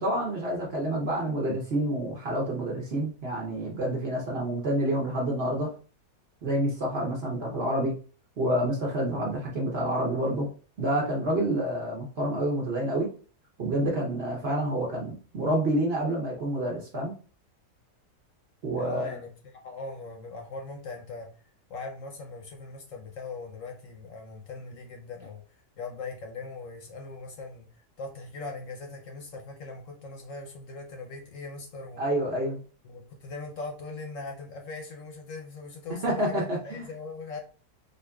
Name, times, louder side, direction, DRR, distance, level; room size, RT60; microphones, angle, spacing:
voice 1, 0.0-5.7 6.4-7.9 8.4-10.5 10.8-13.1 13.6-17.1 18.6-19.1 32.0-32.6 36.0-36.9, right 1 dB, 50° right, -2 dB, 0.9 m, -28 dB
voice 2, 18.8-21.3 21.7-25.4 25.8-27.7 28.0-32.0 32.8-37.4, left 3 dB, 65° left, 2 dB, 0.9 m, -40 dB
4.2 x 2.7 x 2.3 m, 0.38 s
omnidirectional pair, 1.7 m